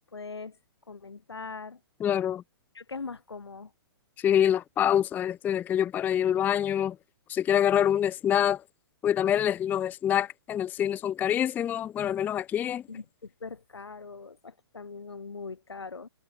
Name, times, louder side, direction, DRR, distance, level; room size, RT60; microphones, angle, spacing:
voice 1, 0.1-0.6 0.9-1.8 2.7-3.7 12.9-16.1, left 4 dB, 85° left, 4.7 m, -41 dB
voice 2, 2.0-2.4 4.2-7.0 7.3-8.6 9.0-12.8, left 10 dB, 15° left, 0.4 m, -26 dB
hypercardioid pair, 125°, 13 cm